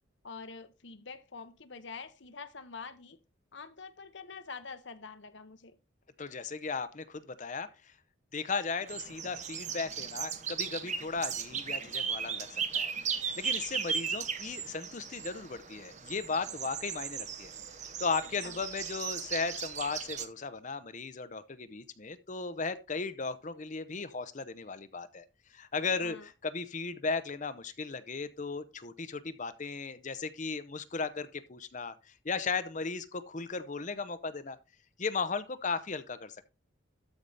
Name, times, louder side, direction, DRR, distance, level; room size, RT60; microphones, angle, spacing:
voice 1, 0.2-3.2 3.5-5.8 18.4-18.5 26.0-26.3, left 5 dB, 60° left, 1.0 m, -46 dB
voice 2, 6.2-7.9 8.3-17.5 18.0-25.2 25.5-34.6 35.0-36.4, left 4 dB, 40° left, 0.7 m, -36 dB
sound 1, 8.9-20.3, right 7 dB, 35° right, 0.8 m, -37 dB
13.0 x 4.8 x 4.0 m
head